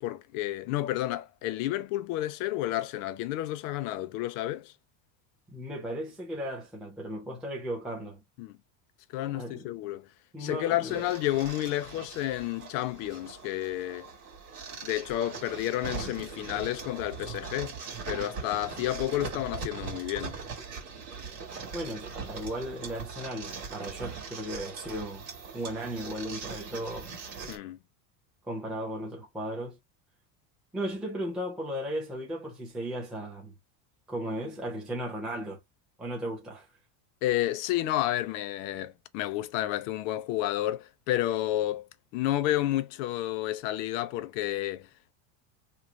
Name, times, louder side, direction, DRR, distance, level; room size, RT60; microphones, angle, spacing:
voice 1, 0.0-4.7 8.4-8.6 9.1-10.1 10.4-14.1 14.8-17.8 18.1-20.4 27.5-27.8 37.2-41.9 42.1-44.9, left 14 dB, 60° left, 0.5 m, -31 dB
voice 2, 5.5-8.2 9.3-9.7 10.3-11.1 21.7-25.3 25.5-27.1 28.5-29.8 30.7-33.5 34.1-35.6 36.0-36.7, equal, ahead, 0.5 m, -36 dB
sound 1, 10.9-27.6, right 5 dB, 40° right, 1.7 m, -41 dB
3.1 x 2.1 x 3.7 m
cardioid pair, 170°, 44 cm